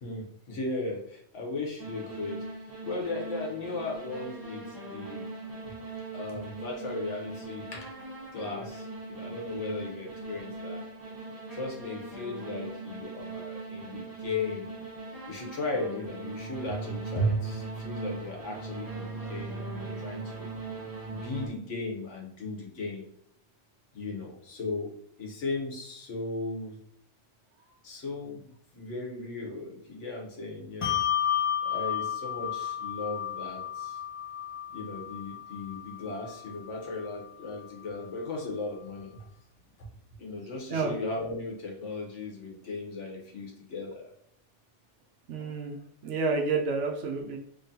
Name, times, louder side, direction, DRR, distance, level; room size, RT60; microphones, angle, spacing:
voice 1, 0.0-5.2 6.1-7.9 8.3-10.8 11.5-14.7 15.3-20.5 21.1-23.1 23.9-24.9 25.2-26.8 27.8-31.0 31.6-34.0 34.7-39.3 39.8-39.9 40.2-44.0, left 2 dB, 85° left, -1 dB, 1.3 m, -36 dB
sound 1, 1.8-21.5, right 3 dB, 20° right, 0.8 m, -40 dB
Bell, 30.8-37.7, left 9 dB, 45° left, 0.4 m, -33 dB
voice 2, 45.3-45.8 46.0-47.4, right 4 dB, 85° right, 2 dB, 0.9 m, -29 dB
3.7 x 3.1 x 2.7 m, 0.68 s
omnidirectional pair, 1.2 m